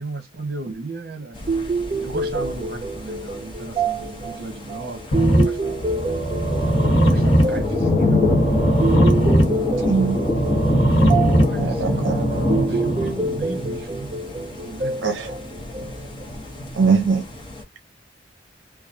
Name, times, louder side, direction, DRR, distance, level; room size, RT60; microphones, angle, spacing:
voice 1, 0.0-1.4 2.0-5.9 7.0-8.9 11.4-14.1 14.6-15.2, right 2 dB, 55° right, 0.9 m, -35 dB
sound 1, 1.3-17.6, left 2 dB, 25° left, 1.0 m, -26 dB
sound 2, 1.5-16.2, right 3 dB, 30° right, 0.3 m, -28 dB
sound 3, 5.1-13.1, right 1 dB, 90° left, 1.1 m, -21 dB
voice 2, 9.8-10.2 11.6-12.1 15.0-15.3 16.8-17.2, right 5 dB, 80° right, 0.5 m, -21 dB
2.9 x 2.3 x 2.5 m
head